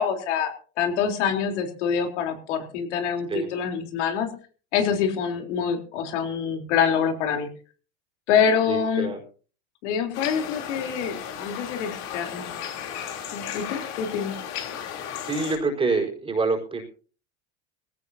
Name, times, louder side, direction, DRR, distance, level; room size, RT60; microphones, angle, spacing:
voice 1, 0.0-4.3 4.7-7.5 8.3-9.1 9.8-12.5 13.3-14.3, left 7 dB, 85° left, 4 dB, 3.9 m, -25 dB
voice 2, 8.7-9.2 15.2-16.8, right 3 dB, 15° right, 2 dB, 4.6 m, -26 dB
sound 1, 10.1-15.6, left 9 dB, 50° left, 3.6 m, -35 dB
20.0 x 16.5 x 2.8 m, 0.40 s
supercardioid pair, 145°, 35 cm